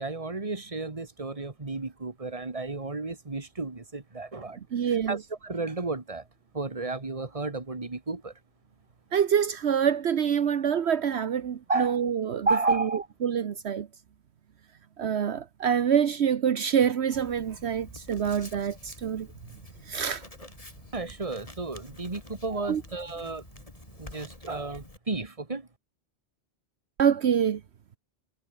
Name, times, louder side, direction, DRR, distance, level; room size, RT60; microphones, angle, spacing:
voice 1, 0.0-4.6 4.9-6.2 6.5-8.3 11.7-12.1 12.5-13.1 20.9-23.4 24.0-25.7, right 3 dB, 30° right, 2.0 m, -32 dB
voice 2, 4.7-5.2 9.1-12.9 13.2-13.9 15.0-19.3 19.9-20.2 22.6-22.8 27.0-27.6, right 8 dB, 70° right, 1.2 m, -26 dB
Writing, 17.1-25.0, left 2 dB, 30° left, 3.3 m, -48 dB
omnidirectional pair, 1.1 m